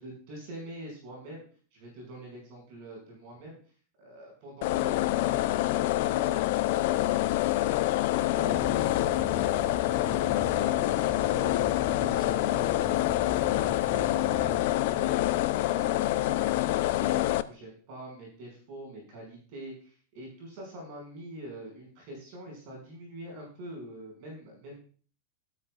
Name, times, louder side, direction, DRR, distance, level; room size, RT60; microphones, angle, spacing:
voice 1, 0.0-1.4 1.7-3.6 4.0-15.3 15.6-24.8, right 1 dB, 45° right, 0 dB, 6.3 m, -45 dB
sound 1, 4.6-17.4, left 16 dB, 50° left, 0.5 m, -26 dB
sound 2, 8.5-14.6, right 4 dB, 15° right, 0.8 m, -42 dB
13.0 x 13.0 x 2.5 m, 0.43 s
figure-of-eight pair, 90°, 0 cm